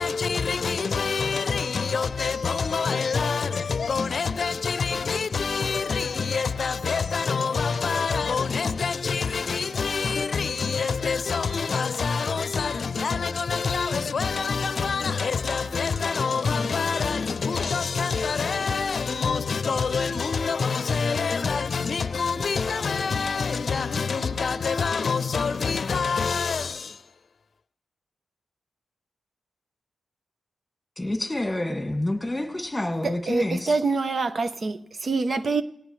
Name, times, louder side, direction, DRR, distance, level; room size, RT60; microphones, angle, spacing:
voice 1, 0.0-27.0, left 5 dB, 55° left, 0.6 m, -26 dB
voice 2, 31.0-33.8, left 1 dB, 10° left, 2.2 m, -28 dB
voice 3, 33.0-35.6, right 3 dB, 50° right, 0.8 m, -25 dB
18.5 x 17.5 x 3.2 m
cardioid pair, 65°, 0 cm